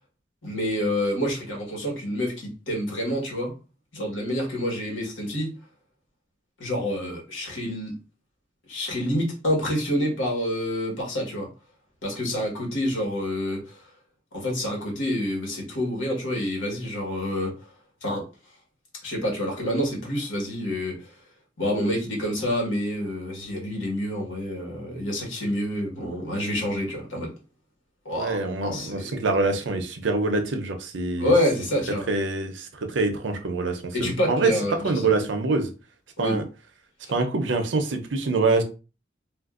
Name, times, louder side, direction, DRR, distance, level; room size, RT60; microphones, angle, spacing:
voice 1, 0.4-3.5 3.9-5.5 6.6-7.9 8.7-11.5 12.0-13.8 14.3-17.5 18.0-18.2 19.0-21.1 21.6-27.3 28.0-29.3 31.2-32.1 33.9-35.1 36.2-36.4 37.0-37.1, left 1 dB, 90° left, 1.4 m, -27 dB
voice 2, 28.1-31.3 32.1-34.5 34.8-35.7 36.2-36.4 37.1-38.6, right 3 dB, 70° right, 0.6 m, -25 dB
3.5 x 2.5 x 2.4 m
head